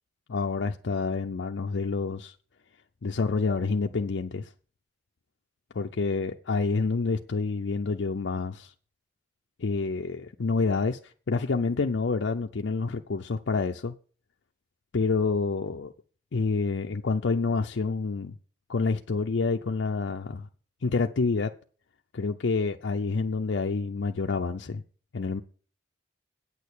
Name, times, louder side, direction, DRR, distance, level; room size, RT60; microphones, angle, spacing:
voice 1, 0.3-2.3 3.0-4.5 5.8-8.7 9.6-13.9 14.9-15.9 16.3-18.3 18.7-20.5 20.8-21.5 22.1-24.8 25.1-25.4, left 4 dB, 70° left, 0.5 m, -28 dB
9.0 x 6.5 x 8.4 m
head